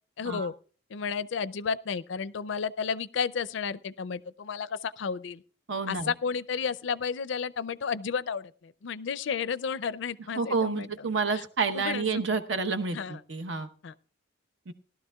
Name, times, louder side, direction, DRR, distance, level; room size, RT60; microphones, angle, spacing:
voice 1, 0.2-0.5 0.9-5.4 5.9-11.4 11.7-12.4 12.9-13.2 13.8-13.9, left 6 dB, 65° left, 16 dB, 0.4 m, -32 dB
voice 2, 5.7-6.1 10.4-13.0 13.3-13.7 14.7-14.8, right 4 dB, 65° right, 10 dB, 0.9 m, -29 dB
18.5 x 12.0 x 2.3 m, 0.40 s
head